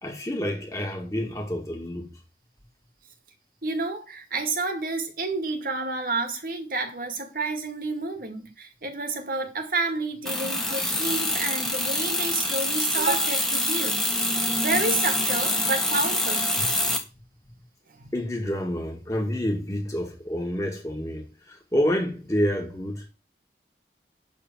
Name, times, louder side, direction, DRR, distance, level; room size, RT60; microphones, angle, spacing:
voice 1, 0.0-2.1 16.6-16.9 18.1-23.1, equal, 20° left, 2.1 m, -28 dB
voice 2, 3.6-14.1 14.6-16.5 17.9-18.1, right 3 dB, 50° right, 2.1 m, -30 dB
sound 1, 10.3-17.0, left 1 dB, 5° left, 1.5 m, -25 dB
11.5 x 4.0 x 7.6 m
head